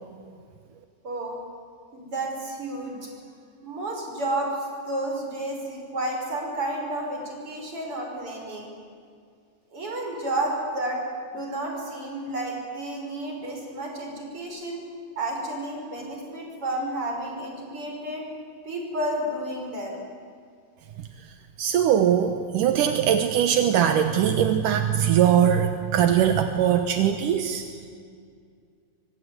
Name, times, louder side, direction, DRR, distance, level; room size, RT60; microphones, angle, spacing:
voice 1, 1.0-1.4 1.9-3.0 3.6-8.7 9.7-11.0 11.2-14.8 15.2-18.2 18.6-20.0, right 1 dB, 30° right, 1 dB, 6.1 m, -31 dB
voice 2, 21.6-27.6, right 9 dB, 70° right, 7 dB, 2.1 m, -21 dB
25.5 x 24.0 x 9.8 m, 2.2 s
omnidirectional pair, 5.1 m